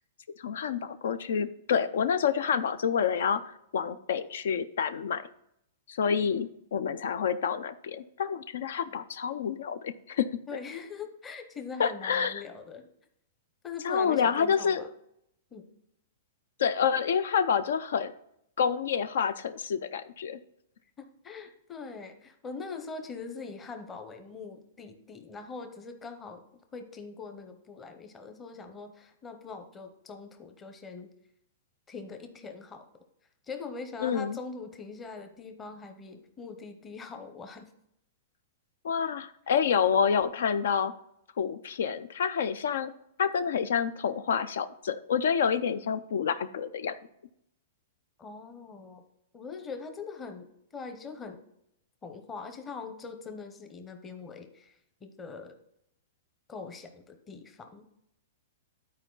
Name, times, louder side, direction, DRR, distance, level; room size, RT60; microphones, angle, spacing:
voice 1, 0.4-3.4 3.7-5.3 5.9-10.3 11.8-12.4 13.8-14.9 16.6-18.1 18.6-20.4 34.0-34.4 38.8-40.9 41.4-42.9 43.2-46.9, left 7 dB, 75° left, 12 dB, 0.5 m, -28 dB
voice 2, 10.5-12.9 13.6-14.9 15.5-15.7 21.0-26.4 26.7-31.1 31.9-32.9 33.5-37.7 48.2-49.0 49.3-51.4 52.0-54.7 55.0-55.5 56.5-57.9, left 4 dB, 15° left, 6 dB, 0.7 m, -42 dB
11.5 x 4.5 x 3.9 m, 0.76 s
hypercardioid pair, 165°, 0 cm